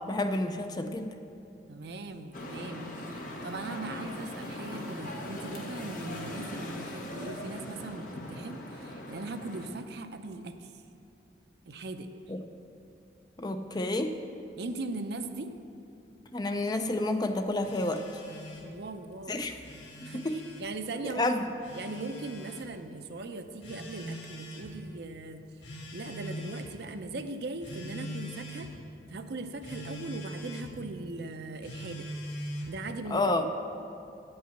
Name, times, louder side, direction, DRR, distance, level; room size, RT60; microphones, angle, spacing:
voice 1, 0.1-1.1 12.3-12.4 13.4-14.1 16.3-18.0 19.3-19.6 20.1-20.3 21.2-21.5 33.1-33.4, left 2 dB, 20° left, 7 dB, 0.4 m, -29 dB
voice 2, 1.7-10.8 11.7-12.1 14.6-15.5 18.6-19.4 20.0-20.3 20.6-21.4 21.7-25.4 25.7-28.7 29.1-32.1 32.7-33.5, right 2 dB, 60° right, 8 dB, 0.5 m, -39 dB
sound 1, 2.3-9.7, left 1 dB, 50° left, 1.1 m, -40 dB
Telephone, 17.6-18.7 19.5-20.7 21.6-22.7 23.6-24.7 25.6-26.7 27.6-28.7 29.6-30.7 31.6-32.8, equal, 90° left, 2.1 m, -42 dB
8.8 x 5.6 x 7.8 m, 2.6 s
head